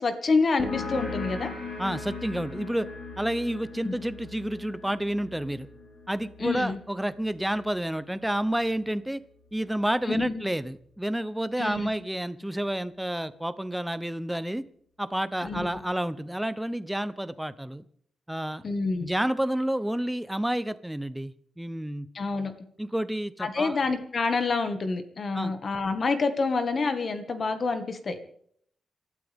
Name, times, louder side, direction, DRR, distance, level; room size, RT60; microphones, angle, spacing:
voice 1, 0.0-1.6 3.8-3.9 6.4-6.8 10.1-10.4 11.6-11.9 15.4-15.7 18.6-19.1 22.1-22.5 23.4-28.2, left 4 dB, 40° left, 8 dB, 1.8 m, -27 dB
sound 1, 0.6-7.9, left 4 dB, 60° left, 5.8 m, -39 dB
voice 2, 1.8-2.9 3.2-5.7 6.1-9.2 9.5-14.6 15.0-17.8 18.3-18.6 19.0-22.1 22.8-23.8 25.3-25.5, right 1 dB, 5° right, 14 dB, 0.7 m, -30 dB
28.0 x 13.0 x 3.6 m, 0.65 s
wide cardioid pair, 150°, 0 cm